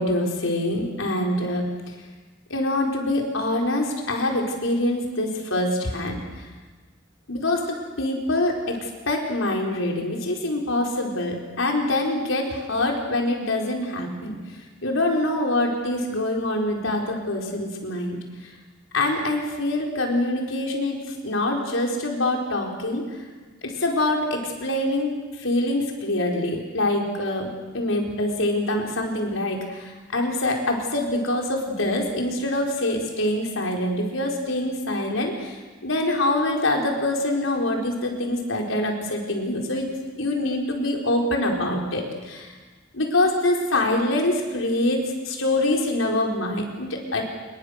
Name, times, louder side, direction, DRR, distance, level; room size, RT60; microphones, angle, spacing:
voice 1, 0.0-1.6 2.5-6.2 7.3-8.8 9.1-14.4 14.8-18.2 18.9-21.0 21.2-23.0 23.6-25.1 25.4-27.5 27.7-39.9 40.2-42.5 42.9-47.2, left 1 dB, 85° left, 1 dB, 4.5 m, -25 dB
27.0 x 22.5 x 6.6 m, 1.3 s
head